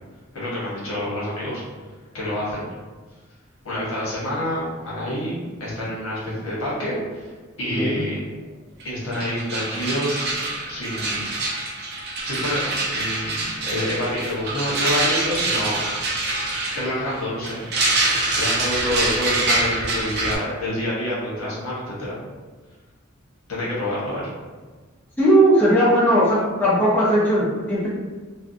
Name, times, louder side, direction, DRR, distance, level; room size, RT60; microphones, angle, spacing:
voice 1, 0.3-1.6 2.1-2.6 3.6-7.3 7.6-8.2 8.8-10.3 10.7-11.3 12.2-16.2 16.7-17.6 18.3-22.2 23.5-24.2, left 1 dB, 75° left, -7 dB, 1.0 m, -27 dB
sound 1, 8.8-8.9 9.1-20.4, right 2 dB, 50° right, 0.5 m, -25 dB
voice 2, 25.2-27.9, right 1 dB, 10° left, -9 dB, 0.5 m, -18 dB
2.6 x 2.1 x 2.5 m, 1.4 s
head